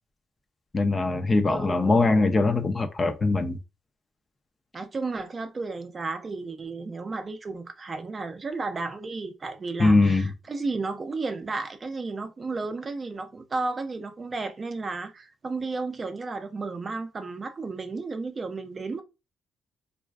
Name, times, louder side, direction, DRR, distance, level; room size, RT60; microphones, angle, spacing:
voice 1, 0.7-3.6 9.8-10.3, left 3 dB, 30° left, 0.4 m, -22 dB
voice 2, 1.4-2.1 4.7-19.0, right 3 dB, 35° right, 0.4 m, -33 dB
2.4 x 2.3 x 2.2 m
cardioid pair, 90°, 0 cm